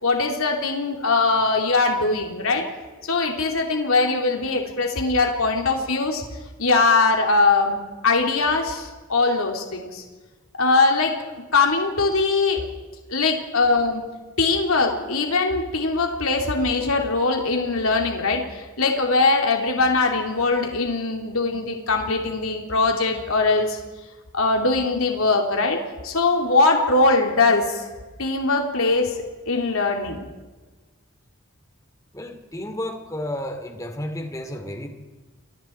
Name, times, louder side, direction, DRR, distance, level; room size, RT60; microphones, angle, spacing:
voice 1, 0.0-2.6 3.1-6.2 6.6-10.0 10.6-12.6 13.1-14.0 14.4-23.8 24.3-27.9 28.2-30.2, left 3 dB, 85° left, 2 dB, 3.1 m, -21 dB
voice 2, 32.1-34.9, left 1 dB, 15° left, 6 dB, 2.7 m, -32 dB
29.5 x 22.5 x 4.6 m, 1.3 s
head